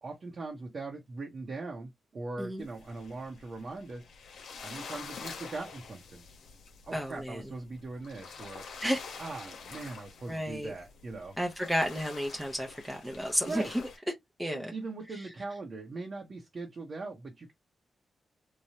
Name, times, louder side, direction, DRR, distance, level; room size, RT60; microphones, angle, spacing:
voice 1, 0.0-4.1 4.6-6.2 6.8-8.7 9.2-11.3 13.4-13.7 14.5-17.5, right 3 dB, 55° right, 0.9 m, -40 dB
sound 1, 2.6-14.0, left 5 dB, 85° left, 0.7 m, -47 dB
voice 2, 6.9-7.4 8.8-9.0 10.3-10.7 11.4-13.6 14.4-14.7, equal, 10° right, 0.7 m, -32 dB
3.1 x 2.2 x 2.8 m
cardioid pair, 60°, 0 cm